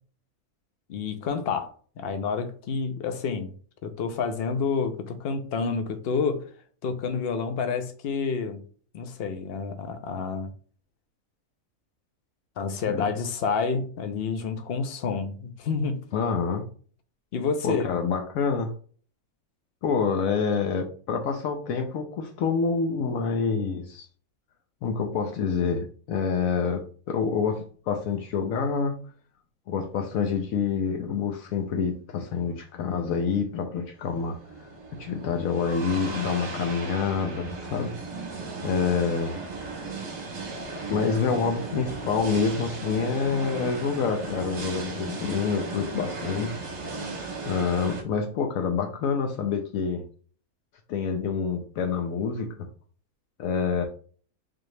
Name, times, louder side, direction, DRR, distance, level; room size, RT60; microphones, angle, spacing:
voice 1, 0.9-3.5 3.8-6.4 6.8-8.6 8.9-10.5 12.6-16.0 17.3-18.0, left 5 dB, 55° left, 0.7 m, -29 dB
voice 2, 16.1-16.6 17.6-18.7 19.8-24.1 24.8-29.0 29.7-34.4 35.0-37.9 38.6-39.4 40.9-46.6 47.5-50.0 50.9-52.7 53.4-53.8, left 5 dB, 70° left, 1.0 m, -27 dB
sound 1, 34.0-48.0, right 3 dB, 55° right, 1.1 m, -36 dB
4.1 x 2.8 x 3.2 m
omnidirectional pair, 1.5 m